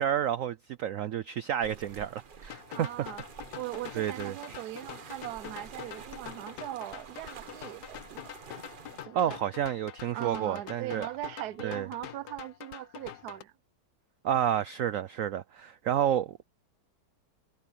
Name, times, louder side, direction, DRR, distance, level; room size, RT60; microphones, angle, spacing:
voice 1, 0.0-2.9 3.9-4.6 9.1-11.1 11.6-11.9 14.2-16.4, right 10 dB, 90° right, 0.7 m, -30 dB
sound 1, 1.6-9.1, right 6 dB, 40° right, 0.7 m, -48 dB
sound 2, 2.5-13.4, left 11 dB, 65° left, 1.2 m, -46 dB
voice 2, 2.7-3.2 3.5-8.4 9.0-9.4 10.1-13.5, right 15 dB, 65° right, 1.1 m, -40 dB
omnidirectional pair, 2.0 m